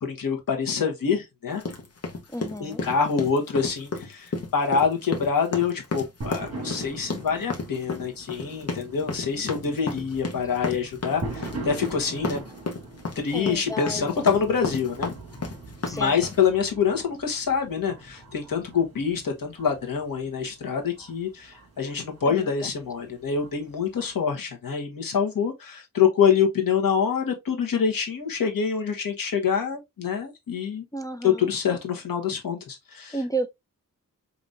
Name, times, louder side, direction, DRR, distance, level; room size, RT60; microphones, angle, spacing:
voice 1, 0.0-1.6 2.6-12.4 13.1-15.1 15.9-30.8 31.2-33.2, left 6 dB, 80° left, 1.3 m, -26 dB
sound 1, 1.6-16.5, left 3 dB, 45° left, 1.0 m, -32 dB
voice 2, 2.3-2.8 13.3-14.2 15.9-16.3 22.3-22.5 30.9-31.5 33.1-33.5, right 1 dB, 10° left, 0.3 m, -32 dB
sound 2, 6.2-24.2, right 2 dB, 50° right, 2.4 m, -42 dB
5.1 x 2.9 x 2.6 m
wide cardioid pair, 165°, 34 cm